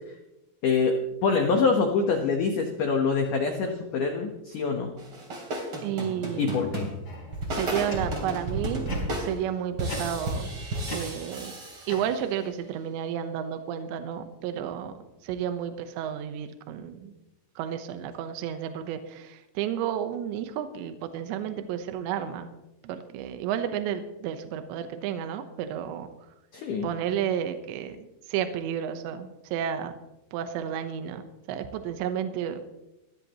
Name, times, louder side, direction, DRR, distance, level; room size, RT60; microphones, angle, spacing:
voice 1, 0.6-4.9 6.4-6.9 26.5-26.9, left 4 dB, 75° left, 3 dB, 1.9 m, -25 dB
sound 1, 5.0-12.4, right 1 dB, 30° right, 3.2 m, -33 dB
voice 2, 5.8-6.6 7.5-8.9 9.2-10.5 10.9-11.5 11.9-15.0 15.2-17.1 17.6-22.5 22.8-26.1 26.8-29.9 30.3-31.2 31.5-32.6, right 9 dB, 75° right, 8 dB, 3.1 m, -32 dB
sound 2, 7.0-8.4 8.9-9.3 9.9-10.5 10.8-12.5, left 1 dB, 25° left, 4.7 m, -41 dB
21.0 x 15.5 x 3.0 m, 0.93 s
omnidirectional pair, 5.6 m